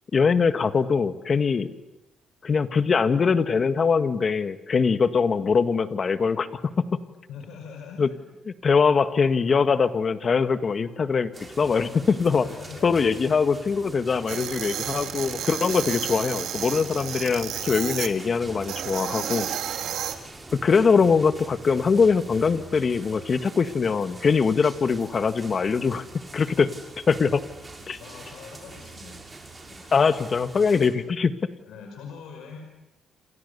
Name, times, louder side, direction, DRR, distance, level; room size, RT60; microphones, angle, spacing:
voice 1, 0.1-1.7 2.4-6.5 6.8-6.9 8.0-8.1 8.5-12.5 12.8-19.5 20.5-26.0 26.3-26.7 27.1-27.4 27.9-28.0 29.9-31.3, left 5 dB, 40° left, 10 dB, 1.9 m, -22 dB
voice 2, 7.3-8.0 12.4-12.9 19.8-20.0 27.8-29.2 29.7-29.9 30.6-30.7 31.6-32.6, left 6 dB, 80° left, 2 dB, 5.5 m, -43 dB
sound 1, 11.3-30.9, right 3 dB, 25° right, 6.1 m, -44 dB
sound 2, 14.3-18.1 18.6-20.2, right 10 dB, 80° right, 2.5 m, -32 dB
29.0 x 28.0 x 7.1 m, 0.95 s
cardioid pair, 90°, 0 cm